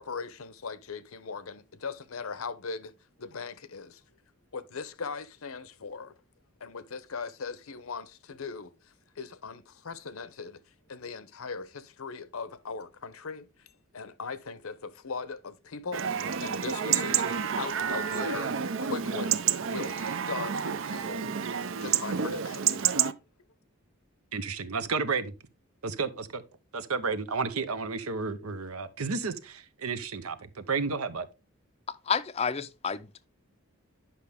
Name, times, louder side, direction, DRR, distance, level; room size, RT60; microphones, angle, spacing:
voice 1, 0.0-2.9 3.2-4.0 4.5-6.1 6.6-10.6 10.9-13.7 13.9-16.1 16.4-21.2 21.8-22.7, left 5 dB, 75° left, 0.7 m, -39 dB
Chatter / Livestock farm animals working animals / Chirp tweet, 15.9-23.1, right 7 dB, 60° right, 0.5 m, -29 dB
voice 2, 24.3-25.2 25.8-26.4 26.7-31.3, right 4 dB, 85° right, 0.9 m, -32 dB
voice 3, 31.9-33.3, left 6 dB, 30° left, 0.4 m, -31 dB
10.0 x 5.6 x 3.5 m
head